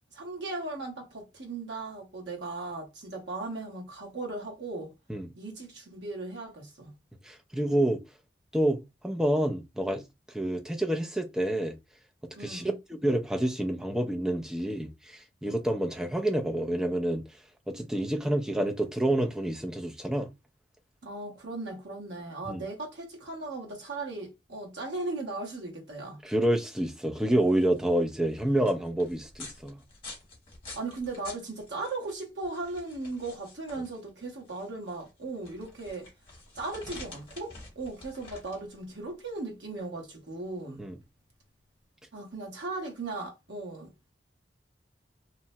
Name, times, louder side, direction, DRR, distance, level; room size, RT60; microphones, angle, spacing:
voice 1, 0.1-4.9 5.4-6.9 12.3-12.8 21.0-26.2 30.7-36.1 36.5-40.8 42.1-44.1, right 2 dB, 75° right, 1.0 m, -37 dB
voice 2, 7.2-8.0 8.5-10.0 10.3-11.8 12.4-17.3 17.7-20.3 22.5-22.6 26.2-29.8 40.8-40.9, right 1 dB, 5° right, 0.4 m, -28 dB
sound 1, 27.3-41.8, left 3 dB, 30° left, 1.1 m, -49 dB
2.8 x 2.1 x 2.7 m
head